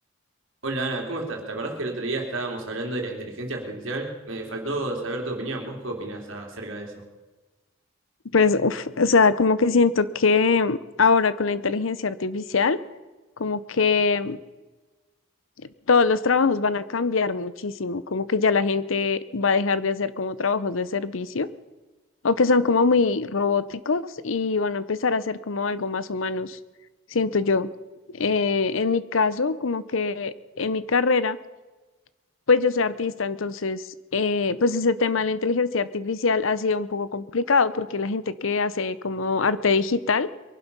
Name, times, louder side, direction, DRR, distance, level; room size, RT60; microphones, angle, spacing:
voice 1, 0.6-7.0, right 2 dB, 75° right, 2 dB, 3.1 m, -31 dB
voice 2, 8.3-12.8 13.4-14.4 15.9-21.5 22.2-26.6 27.1-27.7 28.1-31.4 32.5-33.8 34.1-40.3, left 4 dB, 75° left, 16 dB, 0.8 m, -23 dB
22.5 x 11.5 x 5.5 m, 1.2 s
head